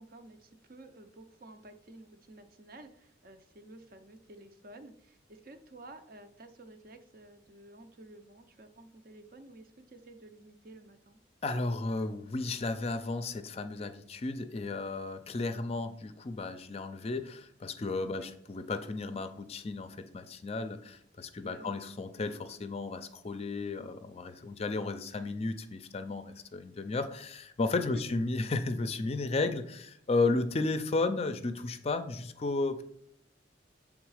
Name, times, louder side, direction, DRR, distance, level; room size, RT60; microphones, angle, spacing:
voice 1, 0.0-11.2 18.2-18.3 21.4-21.7 27.9-28.0, right 2 dB, 50° right, 7 dB, 0.6 m, -52 dB
voice 2, 11.4-32.8, left 3 dB, 35° left, 9 dB, 0.4 m, -33 dB
7.1 x 3.6 x 4.8 m, 0.72 s
head